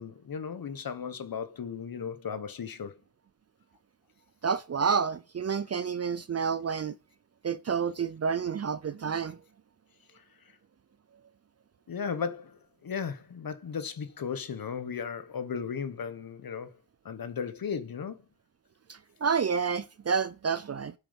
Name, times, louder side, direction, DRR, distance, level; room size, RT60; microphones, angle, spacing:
voice 1, 0.0-2.9 10.1-10.2 11.9-16.7 17.0-18.2, left 6 dB, 60° left, 1.2 m, -36 dB
voice 2, 4.4-6.9 7.4-9.4 18.9-20.9, right 6 dB, 40° right, 0.5 m, -29 dB
10.5 x 8.1 x 5.2 m
wide cardioid pair, 140°, 40 cm